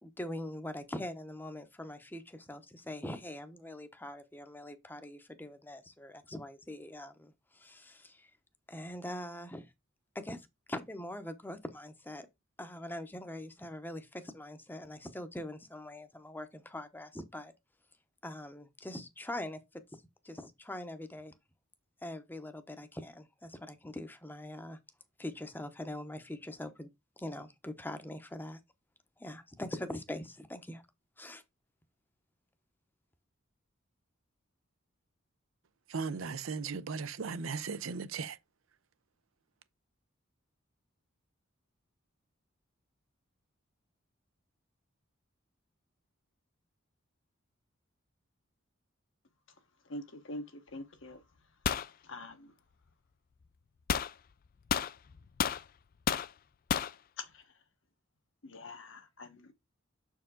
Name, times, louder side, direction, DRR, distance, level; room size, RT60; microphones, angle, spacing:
voice 1, 0.0-8.3 8.7-9.7 10.1-12.3 12.6-17.5 18.2-21.3 22.0-24.8 25.2-26.9 27.2-28.6 29.2-30.8 31.2-31.4, left 1 dB, 10° left, 0.8 m, -43 dB
voice 2, 35.9-38.4, right 5 dB, 80° right, 0.6 m, -37 dB
voice 3, 49.9-50.4 50.7-51.2 52.0-52.5 57.2-57.4 58.4-59.5, left 2 dB, 65° left, 1.1 m, -44 dB
sound 1, 51.6-51.9 53.9-54.1 54.7-55.6 56.1-56.3 56.7-56.9, left 8 dB, 45° left, 0.3 m, -31 dB
6.9 x 4.7 x 3.7 m
head